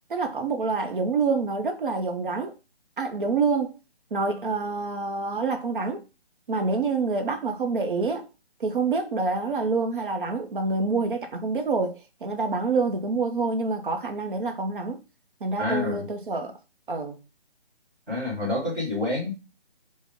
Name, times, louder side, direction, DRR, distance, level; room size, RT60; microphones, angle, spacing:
voice 1, 0.1-2.5 3.0-3.7 4.1-6.0 6.5-8.3 8.6-15.0 15.4-16.5 16.9-17.2, right 4 dB, 50° right, 0.5 m, -27 dB
voice 2, 15.6-16.0 18.1-19.3, left 2 dB, 5° right, 0.7 m, -27 dB
3.5 x 2.0 x 3.5 m
figure-of-eight pair, 155°, 33 cm